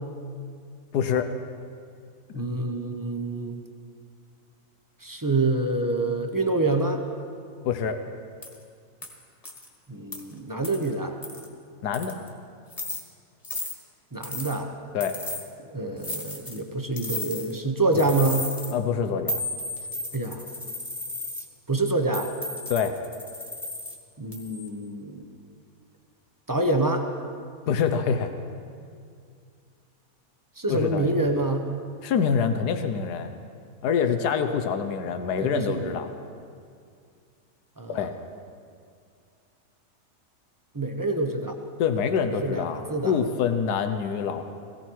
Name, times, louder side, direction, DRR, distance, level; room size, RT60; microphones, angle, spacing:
voice 1, 0.9-1.3 2.3-2.5 7.6-8.0 11.8-12.2 14.9-15.2 17.9-18.0 18.7-19.4 22.7-23.0 27.7-28.3 30.7-31.1 32.0-33.3 33.8-36.1 37.9-38.1 41.8-44.4, left 7 dB, 90° left, 8 dB, 1.4 m, -26 dB
voice 2, 2.3-3.6 5.0-7.0 9.9-11.2 14.1-14.7 15.7-18.5 20.1-20.4 21.7-22.3 24.2-25.2 26.5-27.1 30.6-31.7 35.4-36.0 37.8-38.1 40.7-41.5 42.4-43.2, right 2 dB, 20° right, 4 dB, 0.7 m, -26 dB
sound 1, 8.4-8.6 9.0-9.1 9.4-9.7 10.1-10.2 10.6-10.9 11.2-11.5 11.9-12.3 12.7-13.0 13.4-13.7 14.2-14.6 15.0-15.4 16.0-16.6 17.0-17.6 17.9-18.7 19.3-21.4 22.1-24.0 24.3-24.7, left 1 dB, 25° left, 1.6 m, -34 dB
17.5 x 16.5 x 4.6 m, 2.3 s
omnidirectional pair, 1.6 m